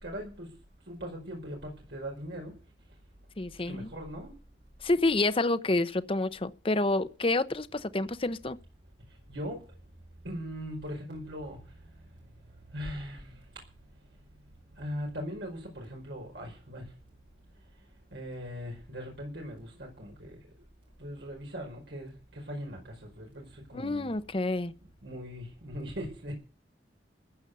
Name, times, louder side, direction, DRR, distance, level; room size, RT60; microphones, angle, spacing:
voice 1, 0.0-0.5 0.9-2.5 3.7-4.3 9.3-9.6 10.2-11.7 12.7-13.4 14.8-16.9 18.1-20.4 21.0-24.1 25.0-26.3, equal, 85° right, 5.1 m, -40 dB
voice 2, 3.4-3.9 4.8-8.6 23.7-24.7, left 2 dB, 30° left, 0.8 m, -28 dB
15.5 x 8.8 x 6.8 m
head